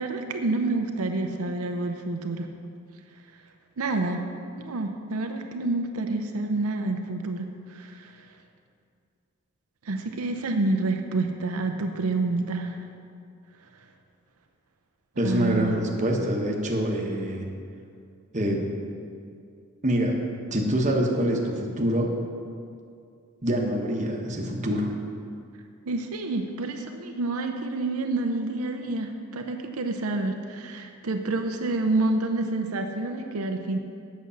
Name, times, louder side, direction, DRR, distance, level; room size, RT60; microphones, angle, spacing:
voice 1, 0.0-2.5 3.8-4.2 4.6-8.1 9.9-12.8 15.2-15.8 25.9-33.8, right 2 dB, 85° right, 4 dB, 0.7 m, -28 dB
voice 2, 15.2-17.4 18.3-18.7 19.8-20.2 20.5-22.1 23.4-24.9, equal, 35° right, 1 dB, 1.0 m, -25 dB
8.6 x 6.2 x 6.9 m, 2.4 s
head